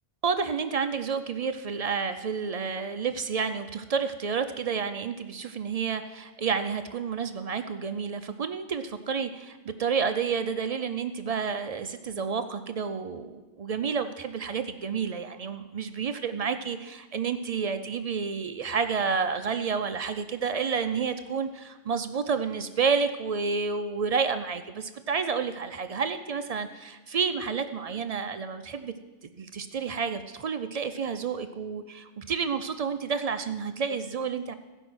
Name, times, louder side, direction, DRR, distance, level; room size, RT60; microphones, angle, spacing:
voice 1, 0.2-28.9 29.2-34.5, right 5 dB, 65° right, 9 dB, 0.3 m, -30 dB
16.0 x 5.4 x 6.2 m, 1.2 s
omnidirectional pair, 1.2 m